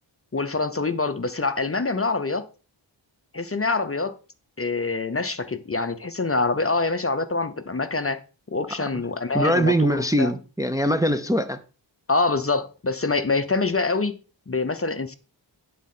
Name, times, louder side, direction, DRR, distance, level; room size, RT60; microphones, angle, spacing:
voice 1, 0.3-2.5 3.3-4.2 4.6-8.2 8.5-10.3 12.1-14.2 14.5-15.2, left 3 dB, 30° left, 0.7 m, -25 dB
voice 2, 9.3-11.6, equal, 10° right, 0.6 m, -22 dB
9.7 x 4.2 x 5.5 m
wide cardioid pair, 85°, 45 cm